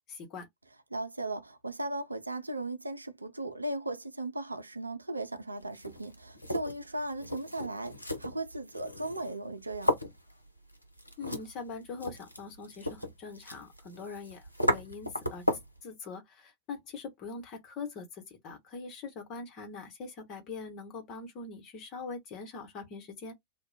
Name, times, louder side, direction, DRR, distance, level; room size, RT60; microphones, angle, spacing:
voice 1, 0.1-0.5 11.2-15.4 15.8-23.3, left 4 dB, 35° left, 1.0 m, -43 dB
voice 2, 0.9-9.9, right 2 dB, 80° right, 0.4 m, -37 dB
sound 1, 5.6-15.8, left 1 dB, 85° left, 0.5 m, -36 dB
2.3 x 2.1 x 3.9 m
figure-of-eight pair, 90°, 0 cm